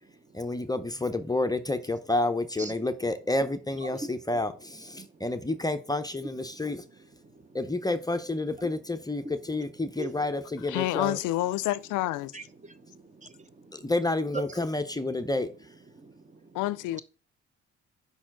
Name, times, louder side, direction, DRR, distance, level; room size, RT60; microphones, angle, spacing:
voice 1, 0.3-6.8 7.5-11.2 13.7-15.5, left 2 dB, 15° left, 0.6 m, -29 dB
voice 2, 10.7-12.3 16.5-17.0, left 16 dB, 90° left, 0.5 m, -28 dB
voice 3, 12.3-13.7 14.3-14.4 16.0-16.2, right 4 dB, 25° right, 0.8 m, -40 dB
5.5 x 4.3 x 5.9 m
cardioid pair, 90°, 30 cm